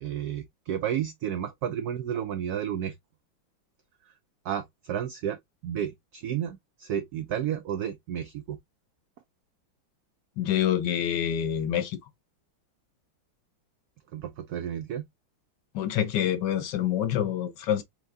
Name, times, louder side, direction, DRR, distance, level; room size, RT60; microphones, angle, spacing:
voice 1, 0.0-2.9 4.4-5.4 5.6-8.6 14.1-15.1, right 10 dB, 85° right, 0.8 m, -32 dB
voice 2, 10.4-12.0 15.7-17.8, left 10 dB, 70° left, 1.2 m, -26 dB
4.5 x 3.7 x 2.6 m
omnidirectional pair, 2.2 m